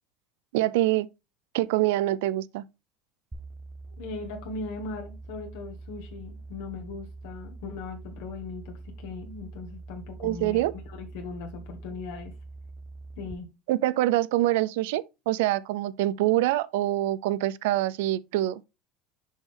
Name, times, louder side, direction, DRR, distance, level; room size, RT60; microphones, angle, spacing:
voice 1, 0.5-1.1 1.5-2.6 10.2-10.7 13.7-18.6, right 15 dB, 85° right, 0.4 m, -25 dB
sound 1, 3.3-13.3, right 3 dB, 10° right, 0.8 m, -44 dB
voice 2, 4.0-10.6 11.0-12.3 13.2-13.5, left 3 dB, 75° left, 1.5 m, -39 dB
6.3 x 5.4 x 3.4 m
cardioid pair, 140°, 0 cm